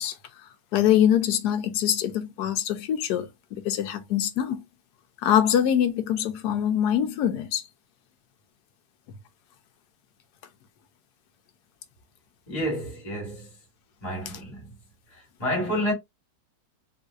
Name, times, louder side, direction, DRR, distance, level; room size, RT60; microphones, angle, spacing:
voice 1, 0.0-4.6 5.2-7.6, left 10 dB, 70° left, 1.1 m, -24 dB
voice 2, 12.5-13.5 14.0-14.7 15.1-15.9, equal, 20° left, 1.3 m, -30 dB
3.8 x 2.6 x 2.4 m
omnidirectional pair, 1.9 m